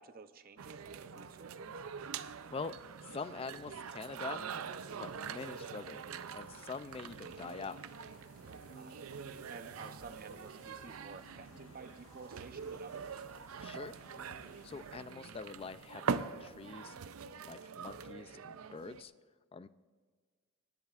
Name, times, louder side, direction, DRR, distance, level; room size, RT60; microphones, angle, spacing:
voice 1, 0.0-1.8 8.4-13.2, right 4 dB, 45° right, 10 dB, 0.6 m, -53 dB
sound 1, 0.6-19.0, right 6 dB, 80° right, 0.5 m, -44 dB
voice 2, 3.0-4.4 5.0-6.0 6.3-7.8 13.6-13.9 14.6-17.0 17.4-19.1 19.5-19.7, left 4 dB, 25° left, 14 dB, 0.3 m, -44 dB
sound 2, 3.3-5.1 6.0-7.9 8.7-13.2 14.1-18.6, right 1 dB, 90° left, 2.5 m, -62 dB
sound 3, 4.6-15.0, left 2 dB, 65° left, 1.5 m, -62 dB
26.0 x 10.5 x 2.4 m, 1.5 s
head